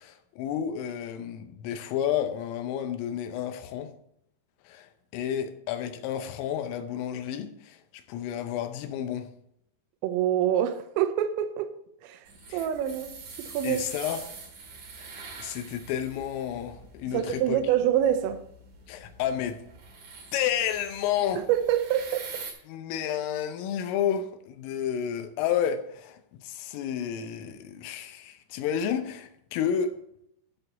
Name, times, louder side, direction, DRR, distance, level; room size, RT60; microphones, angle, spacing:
voice 1, 0.0-3.9 4.7-9.3 12.5-12.7 13.6-14.2 15.0-17.6 18.9-19.6 20.3-21.5 22.7-29.9, left 9 dB, 80° left, 3.4 m, -31 dB
voice 2, 10.0-11.7 12.0-12.2 12.5-13.9 17.1-18.4 21.4-22.4, right 10 dB, 85° right, 3.3 m, -26 dB
sound 1, 12.3-22.5, right 4 dB, 50° right, 2.5 m, -45 dB
12.5 x 4.4 x 6.6 m
omnidirectional pair, 5.9 m